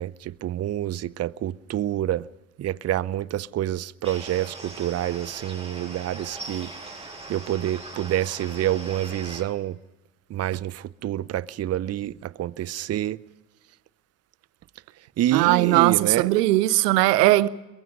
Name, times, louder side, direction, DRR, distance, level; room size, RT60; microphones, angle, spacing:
voice 1, 0.0-2.3 2.6-6.7 7.3-9.8 10.3-13.2 15.2-16.3, right 13 dB, 35° right, 0.6 m, -27 dB
sound 1, 4.0-9.4, right 2 dB, 10° right, 6.6 m, -40 dB
voice 2, 15.3-17.5, right 17 dB, 75° right, 0.9 m, -19 dB
22.5 x 22.0 x 5.3 m
hypercardioid pair, 60°, 47 cm